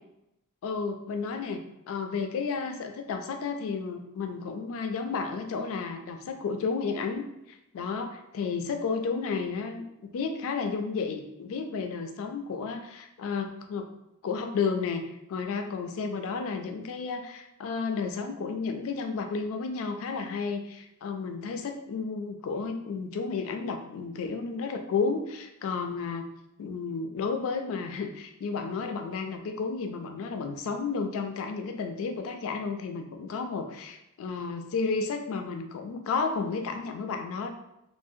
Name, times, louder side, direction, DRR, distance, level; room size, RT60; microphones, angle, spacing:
voice 1, 0.6-13.9 14.2-15.0 15.3-26.3 26.6-37.5, left 5 dB, 65° left, 5 dB, 0.3 m, -32 dB
2.5 x 2.0 x 2.6 m, 0.86 s
head